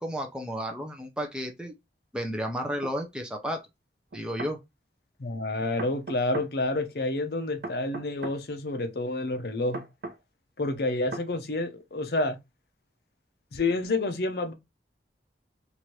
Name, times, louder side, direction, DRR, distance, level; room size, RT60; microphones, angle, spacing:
voice 1, 0.0-1.7 2.1-3.6 4.1-4.6, equal, 5° right, 0.5 m, -32 dB
sound 1, 2.8-3.0 4.1-4.6 5.8-6.5 7.6-8.4 9.7-10.2 11.1-11.3, right 2 dB, 65° right, 0.6 m, -37 dB
voice 2, 5.2-9.8 10.6-12.4 13.5-14.5, left 2 dB, 65° left, 0.6 m, -29 dB
3.0 x 2.5 x 3.0 m
head